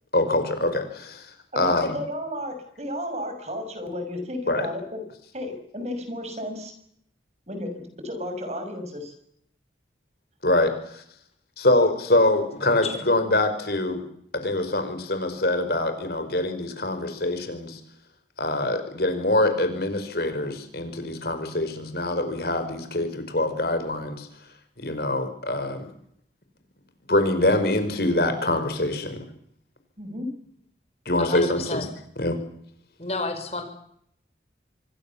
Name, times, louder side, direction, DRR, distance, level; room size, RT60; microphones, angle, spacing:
voice 1, 0.1-1.3 1.5-1.9 4.5-4.7 10.4-11.0 11.6-14.0 14.3-17.8 18.4-24.3 24.8-25.9 27.1-29.2 31.0-31.9 32.2-32.4, left 1 dB, 55° left, 8 dB, 5.0 m, -24 dB
voice 2, 1.5-5.0 5.3-6.7 7.5-9.1 30.0-30.3, left 1 dB, 35° right, 7 dB, 6.5 m, -33 dB
voice 3, 12.6-13.0 31.2-31.9 33.0-33.6, left 3 dB, 35° left, 7 dB, 5.5 m, -31 dB
27.0 x 23.5 x 7.2 m, 0.71 s
head